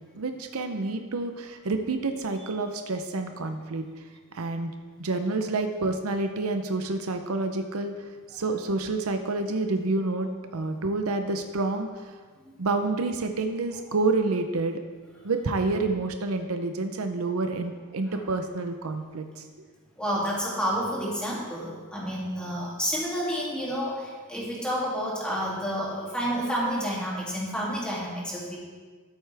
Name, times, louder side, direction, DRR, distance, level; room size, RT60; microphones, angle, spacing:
voice 1, 0.1-3.8 4.3-4.7 5.0-11.9 12.6-14.8 15.2-19.4, right 3 dB, 75° right, 6 dB, 0.7 m, -28 dB
voice 2, 20.0-28.6, equal, 5° left, -6 dB, 2.7 m, -30 dB
13.5 x 8.0 x 3.5 m, 1.5 s
head